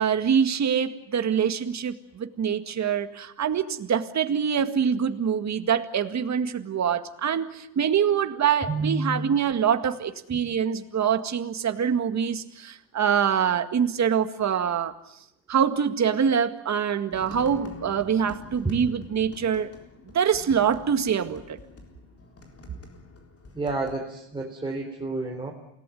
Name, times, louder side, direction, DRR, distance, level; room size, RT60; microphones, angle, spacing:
voice 1, 0.0-14.9 15.5-19.7 20.1-21.6, right 7 dB, 40° right, 8 dB, 2.0 m, -25 dB
voice 2, 8.7-9.3 23.5-25.5, right 3 dB, 10° right, -1 dB, 3.8 m, -30 dB
sound 1, 17.1-24.0, left 3 dB, 30° left, 3.9 m, -46 dB
28.5 x 18.5 x 9.3 m, 0.82 s
cardioid pair, 125°, 44 cm